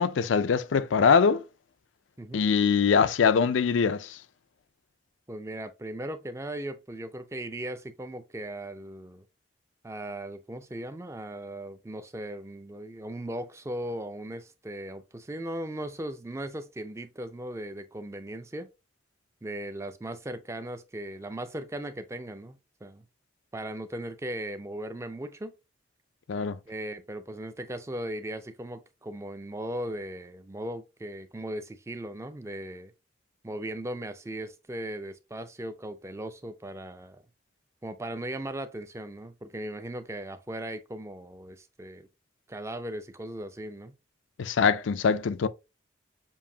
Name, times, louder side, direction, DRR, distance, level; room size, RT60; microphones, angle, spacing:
voice 1, 0.0-1.4 2.3-4.2 26.3-26.6 44.4-45.5, left 6 dB, 80° left, 0.4 m, -23 dB
voice 2, 5.3-9.2 9.8-18.7 19.4-23.0 23.5-25.5 26.7-32.9 33.4-37.2 37.8-42.1 42.5-43.9, right 1 dB, 15° right, 0.4 m, -38 dB
7.1 x 2.6 x 2.7 m
head